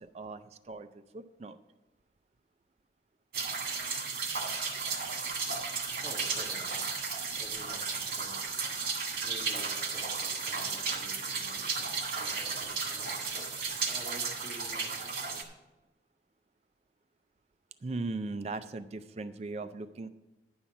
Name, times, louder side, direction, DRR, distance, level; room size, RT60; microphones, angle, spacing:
voice 1, 0.0-1.6 17.8-20.1, right 3 dB, 35° right, 10 dB, 0.4 m, -39 dB
sound 1, 3.3-15.4, right 5 dB, 55° right, 1.8 m, -34 dB
voice 2, 6.0-6.8 7.3-8.6 9.2-13.3 13.5-15.4, right 1 dB, 10° left, -6 dB, 1.8 m, -50 dB
10.5 x 5.6 x 7.0 m, 1.1 s
head